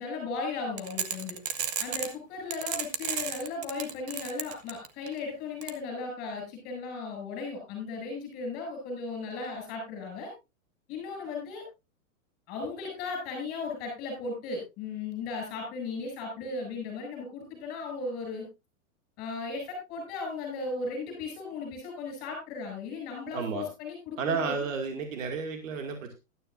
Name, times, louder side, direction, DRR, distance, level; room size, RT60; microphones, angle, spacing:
voice 1, 0.0-1.4 1.8-10.3 10.9-11.6 12.5-18.4 19.2-24.6, left 4 dB, 20° left, 3 dB, 7.8 m, -36 dB
sound 1, 0.8-2.1 2.5-5.1 5.6-5.7, right 9 dB, 30° right, 0.8 m, -32 dB
voice 2, 23.3-23.7 24.2-26.1, right 5 dB, 60° right, 4 dB, 2.3 m, -32 dB
15.5 x 12.0 x 2.6 m, 0.26 s
supercardioid pair, 180°, 43 cm